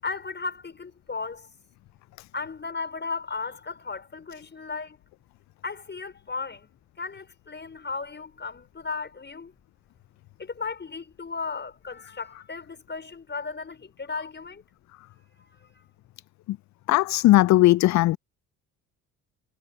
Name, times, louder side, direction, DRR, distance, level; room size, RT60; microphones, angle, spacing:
voice 1, 0.0-1.5 2.3-5.0 5.6-6.7 7.0-9.5 10.4-14.6 15.5-15.9, left 4 dB, 30° left, 5.4 m, -35 dB
voice 2, 16.9-18.2, left 16 dB, 55° left, 0.4 m, -18 dB
supercardioid pair, 60°, 34 cm